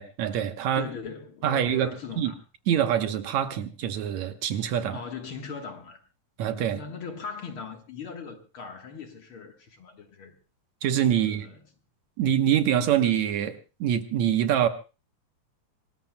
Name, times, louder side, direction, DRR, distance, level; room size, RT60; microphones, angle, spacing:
voice 1, 0.0-0.9 1.4-1.9 2.2-2.3 2.7-5.0 6.4-6.8 10.8-11.5 12.2-14.7, right 10 dB, 70° right, 2.3 m, -25 dB
voice 2, 0.7-2.4 4.9-6.0 6.7-10.4 11.1-11.7, left 5 dB, 50° left, 2.0 m, -39 dB
26.0 x 19.0 x 2.2 m
omnidirectional pair, 3.4 m